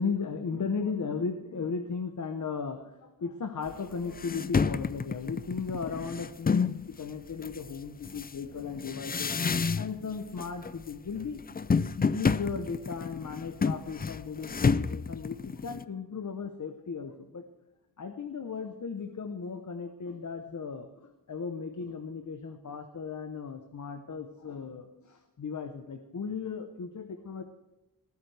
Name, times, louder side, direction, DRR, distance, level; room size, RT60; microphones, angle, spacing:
voice 1, 0.0-9.3 9.8-11.4 12.0-17.4 18.0-27.4, left 5 dB, 55° left, 7 dB, 0.9 m, -36 dB
sound 1, 3.7-3.8 4.1-6.8 7.4-10.1 10.4-10.9 11.2-15.8, left 5 dB, 25° left, 0.4 m, -29 dB
20.0 x 13.5 x 3.4 m, 1.0 s
wide cardioid pair, 110°, 36 cm